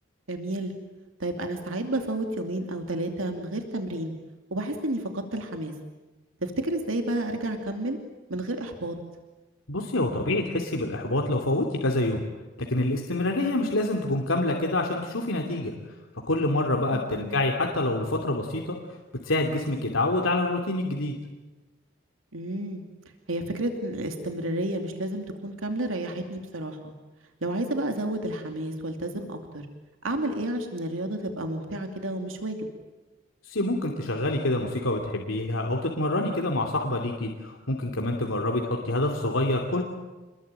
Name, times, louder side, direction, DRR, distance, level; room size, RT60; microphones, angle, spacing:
voice 1, 0.3-0.7 1.2-4.1 4.5-5.7 6.4-8.0 8.3-8.9 16.9-17.4 22.3-22.8 23.3-26.9 27.4-29.6 30.0-32.6, right 1 dB, 85° right, 5 dB, 2.7 m, -31 dB
voice 2, 9.7-12.2 12.7-15.7 16.3-18.7 19.2-21.1 33.5-39.8, left 2 dB, 80° left, 1 dB, 2.8 m, -26 dB
28.5 x 21.5 x 9.1 m, 1.2 s
head